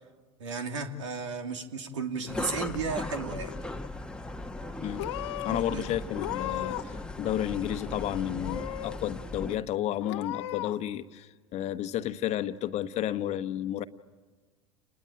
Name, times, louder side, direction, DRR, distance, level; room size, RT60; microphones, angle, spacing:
voice 1, 0.4-3.5 5.5-5.8, right 4 dB, 80° right, 5 dB, 2.7 m, -34 dB
Purr / Meow, 2.2-3.0 3.3-3.9 4.6-4.7 5.0-5.6 6.1-7.0 7.3-8.0 8.4-9.0 9.4-9.5 10.0-10.7, left 15 dB, 70° left, 1.1 m, -37 dB
sound 1, 2.3-9.6, left 2 dB, 5° left, 1.3 m, -38 dB
voice 2, 5.4-13.8, left 11 dB, 45° left, 10 dB, 1.2 m, -32 dB
29.5 x 21.0 x 9.0 m, 1.4 s
hypercardioid pair, 85°, 15 cm